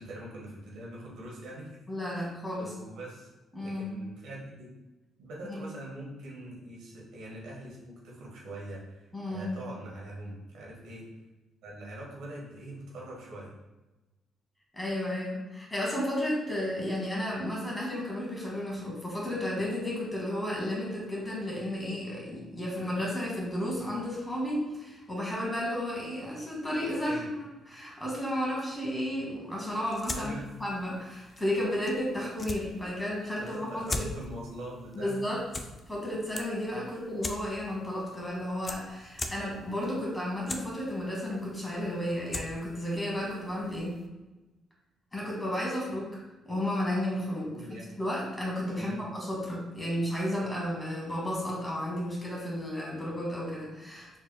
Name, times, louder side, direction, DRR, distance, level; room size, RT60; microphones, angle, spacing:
voice 1, 0.0-1.8 2.6-3.3 3.6-4.7 5.2-11.1 11.6-13.5 27.1-27.2 30.1-30.5 33.0-33.1 33.4-35.2 36.9-37.0 47.5-47.9 48.8-49.0, right 1 dB, 85° right, -3 dB, 1.2 m, -43 dB
voice 2, 1.9-2.7 3.5-3.9 5.4-5.6 9.1-9.5 14.7-30.3 30.6-34.1 34.9-35.4 35.9-44.0 45.1-46.2 46.4-47.5 48.0-54.2, left 1 dB, 10° left, -3 dB, 1.5 m, -33 dB
sound 1, 29.7-44.1, left 2 dB, 25° left, 0.4 m, -42 dB
4.3 x 3.6 x 2.2 m, 1.1 s
cardioid pair, 90°, 0 cm